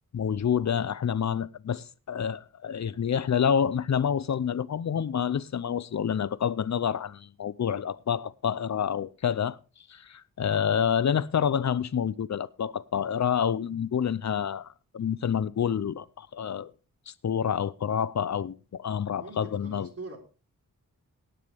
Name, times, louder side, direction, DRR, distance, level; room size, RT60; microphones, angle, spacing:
voice 1, 0.1-9.6 9.9-16.7 17.1-19.9, left 8 dB, 55° left, 0.6 m, -28 dB
voice 2, 19.2-20.2, right 3 dB, 45° right, 3.8 m, -42 dB
17.5 x 9.2 x 3.5 m
wide cardioid pair, 95°, 34 cm